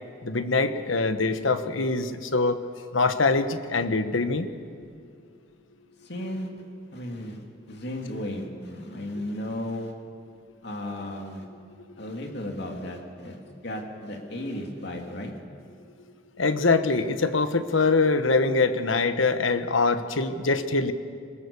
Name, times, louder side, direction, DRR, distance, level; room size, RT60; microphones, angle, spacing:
voice 1, 0.2-2.6 2.9-4.5 16.4-20.9, left 3 dB, 90° left, 10 dB, 1.3 m, -23 dB
voice 2, 6.0-6.5 6.9-9.9 10.6-11.4 12.0-13.4 13.6-15.3, left 1 dB, 60° left, 2 dB, 2.7 m, -34 dB
23.5 x 20.0 x 7.0 m, 2.3 s
head